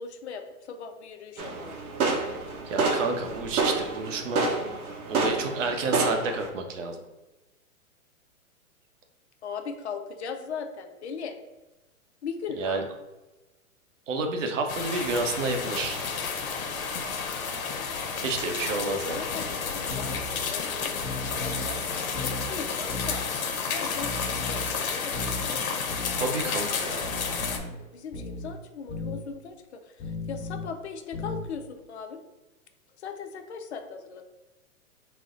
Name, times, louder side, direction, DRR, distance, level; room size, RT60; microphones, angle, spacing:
voice 1, 0.0-1.8 9.4-11.4 12.2-12.8 18.8-21.0 21.3-23.3 23.7-25.6 26.1-32.2 33.0-34.2, left 5 dB, 55° left, 6 dB, 0.5 m, -39 dB
sound 1, 1.4-6.5, right 3 dB, 85° right, 0.9 m, -28 dB
voice 2, 2.7-4.5 5.1-7.0 12.6-12.8 14.1-16.0 18.2-19.2 26.2-27.2, right 3 dB, 60° right, 4 dB, 0.8 m, -30 dB
sound 2, 14.7-27.6, left 5 dB, 80° left, 0.8 m, -31 dB
sound 3, 19.9-20.2 21.0-21.7 22.1-22.5 22.9-23.2 24.0-24.7 25.1-25.4 25.9-26.2 27.0-27.7 28.1-28.5 28.9-29.2 30.0-30.7 31.1-31.5, left 2 dB, 30° left, 1.4 m, -35 dB
4.1 x 2.1 x 3.8 m, 1.1 s
hypercardioid pair, 155°, 42 cm